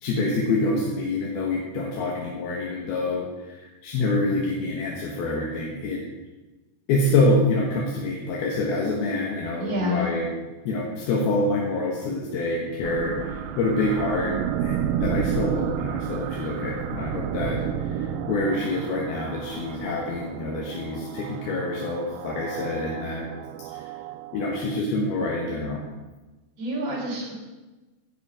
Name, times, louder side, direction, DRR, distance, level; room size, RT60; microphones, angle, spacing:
voice 1, 0.0-6.0 6.9-10.3 10.6-23.3 23.6-23.8 24.3-25.8, left 2 dB, 65° left, -2 dB, 2.8 m, -26 dB
voice 2, 9.6-10.1 26.6-27.3, left 1 dB, 35° right, -4 dB, 4.5 m, -28 dB
sound 1, 12.8-24.8, right 9 dB, 80° right, 2.9 m, -31 dB
16.0 x 8.3 x 5.0 m, 1.1 s
omnidirectional pair, 5.8 m